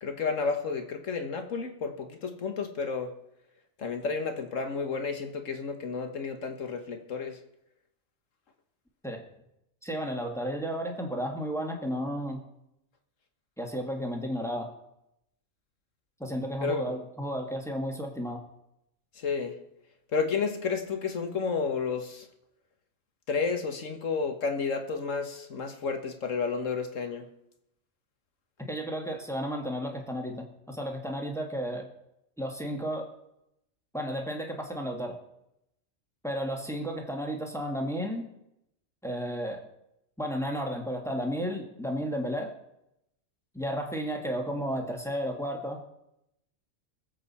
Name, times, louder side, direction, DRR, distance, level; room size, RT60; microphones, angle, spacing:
voice 1, 0.0-3.1 3.8-7.4 16.6-16.8 19.2-19.5 20.1-22.3 23.3-27.3, left 5 dB, 90° left, 6 dB, 1.8 m, -31 dB
voice 2, 9.8-12.4 13.6-14.7 16.2-18.4 28.7-31.9 32.4-33.1 33.9-35.1 36.2-38.3 39.0-39.6 40.2-42.5 43.5-45.8, equal, ahead, 1 dB, 1.7 m, -33 dB
22.5 x 7.9 x 4.3 m, 0.82 s
omnidirectional pair, 1.3 m